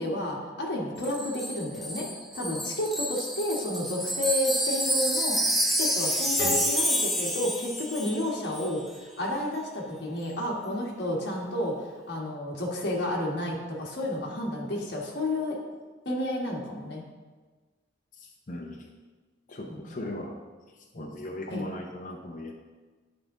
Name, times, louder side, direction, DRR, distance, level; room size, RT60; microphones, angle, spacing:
voice 1, 0.0-2.1 2.3-5.4 5.6-15.6 16.0-17.0 19.7-19.9 20.9-21.1 21.5-21.7, left 1 dB, 65° left, -2 dB, 1.4 m, -31 dB
Wind chime, 1.0-8.3 8.5-8.7, equal, ahead, 0.6 m, -28 dB
sound 1, 6.4-9.2, equal, 25° left, 2.0 m, -40 dB
voice 2, 18.2-18.9 19.5-20.4 20.9-22.5, left 1 dB, 45° left, -1 dB, 0.7 m, -38 dB
8.7 x 5.0 x 3.7 m, 1.3 s
head